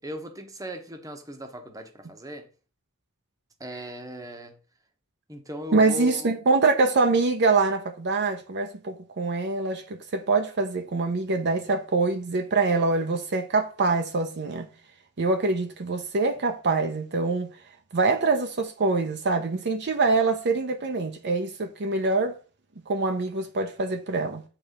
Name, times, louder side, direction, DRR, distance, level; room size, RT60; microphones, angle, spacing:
voice 1, 0.0-2.5 3.6-4.5 5.3-6.3, equal, 15° right, 1.0 m, -38 dB
voice 2, 5.7-14.7 15.2-17.5 17.9-22.4 22.9-24.4, right 3 dB, 50° right, 0.7 m, -24 dB
8.1 x 3.4 x 5.1 m
head